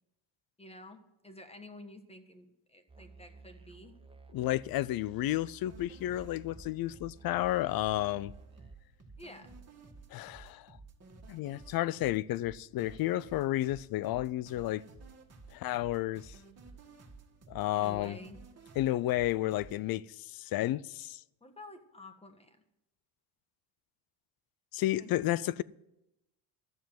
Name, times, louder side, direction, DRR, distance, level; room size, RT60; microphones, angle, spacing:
voice 1, 0.6-4.0 9.2-9.6 17.7-18.4 21.4-22.6 25.0-25.1, left 1 dB, 10° left, 1.4 m, -50 dB
Musical instrument, 2.9-8.8, right 4 dB, 10° right, 0.9 m, -54 dB
voice 2, 4.3-8.3 10.1-10.7 11.3-14.8 15.5-16.3 17.5-18.2 18.8-21.2 24.7-25.6, left 15 dB, 50° left, 0.5 m, -32 dB
sound 1, 5.7-19.8, right 3 dB, 30° right, 2.0 m, -53 dB
12.5 x 7.1 x 9.2 m
cardioid pair, 120°, 50 cm